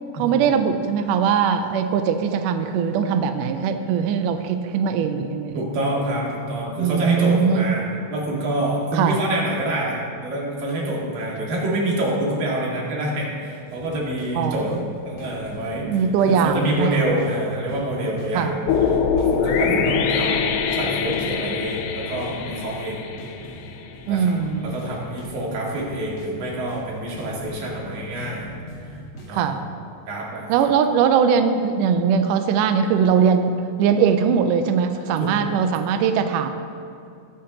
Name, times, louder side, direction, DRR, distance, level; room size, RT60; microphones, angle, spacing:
voice 1, 0.1-5.7 6.8-7.7 8.9-9.2 14.4-14.8 15.8-17.0 18.4-18.5 19.7-20.0 24.1-24.7 29.3-29.6 30.5-36.5, right 7 dB, 90° right, 7 dB, 1.9 m, -21 dB
voice 2, 5.5-14.7 15.1-18.6 18.9-23.0 24.1-28.5 29.3-29.5 30.1-30.5 35.2-35.4, right 1 dB, 70° right, -4 dB, 3.8 m, -27 dB
sound 1, 13.7-29.6, left 1 dB, 50° left, 2.3 m, -41 dB
sound 2, 18.7-23.9, left 6 dB, 90° left, 1.7 m, -23 dB
21.5 x 8.6 x 3.0 m, 2.5 s
omnidirectional pair, 4.3 m